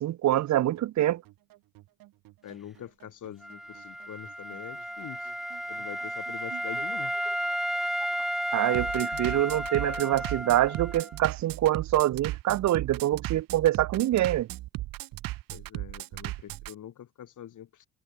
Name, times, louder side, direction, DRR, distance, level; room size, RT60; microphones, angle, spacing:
voice 1, 0.0-1.2 8.5-14.5, right 13 dB, 60° right, 0.7 m, -25 dB
Bass drum, 0.8-16.7, right 17 dB, 85° right, 2.0 m, -38 dB
voice 2, 2.4-5.3 5.7-7.2 7.8-7.9 15.5-17.9, left 10 dB, 65° left, 4.3 m, -44 dB
Wind instrument woodwind instrument, 3.4-11.2, equal, ahead, 0.5 m, -33 dB
cardioid pair, 80°, 33 cm